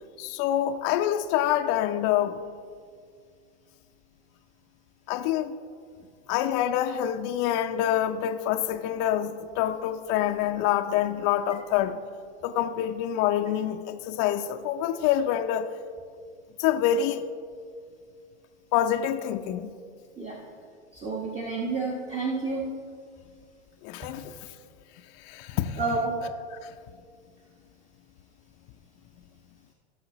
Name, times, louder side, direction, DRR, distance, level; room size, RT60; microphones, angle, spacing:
voice 1, 0.2-2.4 5.1-5.5 6.3-12.0 12.4-15.7 16.6-17.2 18.7-19.8 23.8-24.5 25.2-25.8 26.5-26.7, left 11 dB, 45° left, 0.6 m, -26 dB
voice 2, 21.0-22.7 25.8-26.1, right 3 dB, 20° right, 1.3 m, -29 dB
17.0 x 6.2 x 3.0 m
hypercardioid pair, 105°, 35 cm